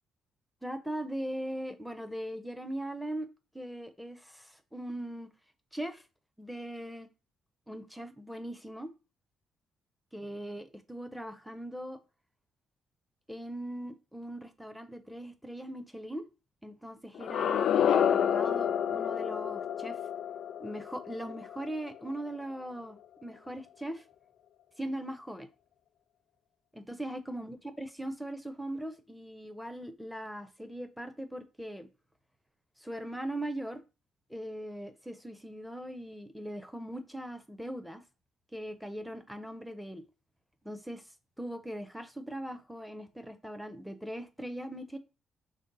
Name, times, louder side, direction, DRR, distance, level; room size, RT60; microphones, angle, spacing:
voice 1, 0.6-3.3 3.5-5.3 5.7-6.0 6.4-7.1 7.7-8.9 10.1-12.0 13.3-16.2 16.6-20.0 20.6-24.0 24.8-25.5 26.7-31.9 32.8-33.8 34.3-38.0 38.5-40.0 40.6-41.0 41.4-45.0, right 1 dB, ahead, 0.7 m, -40 dB
sound 1, 17.2-22.1, left 9 dB, 70° left, 0.3 m, -29 dB
5.0 x 2.2 x 4.0 m
cardioid pair, 90°, 0 cm